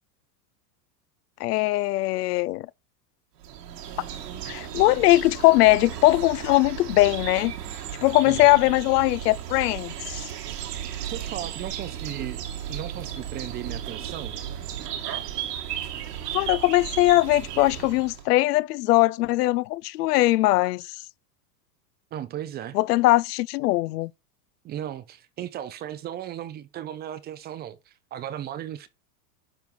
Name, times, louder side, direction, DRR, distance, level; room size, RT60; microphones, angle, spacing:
voice 1, 1.4-2.7 4.5-7.5 8.0-10.2 16.3-20.8 22.7-24.1, left 18 dB, 80° left, 0.6 m, -20 dB
sound 1, 3.4-18.3, right 10 dB, 80° right, 2.4 m, -35 dB
voice 2, 11.0-14.4 22.1-22.8 24.6-28.9, right 11 dB, 20° right, 0.5 m, -36 dB
11.0 x 4.5 x 5.2 m
supercardioid pair, 140°, 47 cm